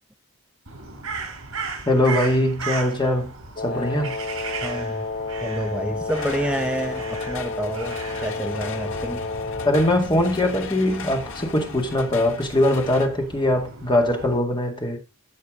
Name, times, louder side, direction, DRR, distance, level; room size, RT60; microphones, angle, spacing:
Crow, 0.7-14.4, right 4 dB, 70° right, 4.7 m, -37 dB
voice 1, 1.9-3.3 3.6-4.2 9.6-15.0, left 1 dB, 20° left, 2.1 m, -21 dB
Wind instrument woodwind instrument, 3.6-10.0, left 4 dB, 45° left, 0.6 m, -31 dB
voice 2, 3.7-5.1 5.4-9.3, right 1 dB, 5° right, 0.6 m, -29 dB
sound 1, 6.1-13.1, left 5 dB, 65° left, 1.5 m, -38 dB
14.0 x 5.6 x 3.8 m
head